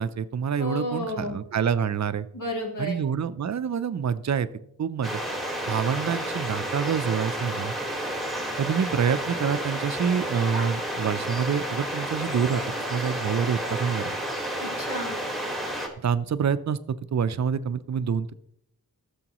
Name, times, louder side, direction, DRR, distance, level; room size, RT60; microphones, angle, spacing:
voice 1, 0.0-2.3 2.8-4.5 4.8-5.2 5.7-7.7 8.6-12.6 12.9-14.1 16.0-18.3, right 7 dB, 50° right, 14 dB, 0.5 m, -27 dB
voice 2, 0.6-1.4 2.3-3.0 14.6-15.2, left 1 dB, 60° left, -1 dB, 2.4 m, -32 dB
sound 1, 5.0-15.9, right 1 dB, ahead, 1.5 m, -31 dB
15.0 x 7.1 x 3.0 m, 0.73 s
wide cardioid pair, 115°, 36 cm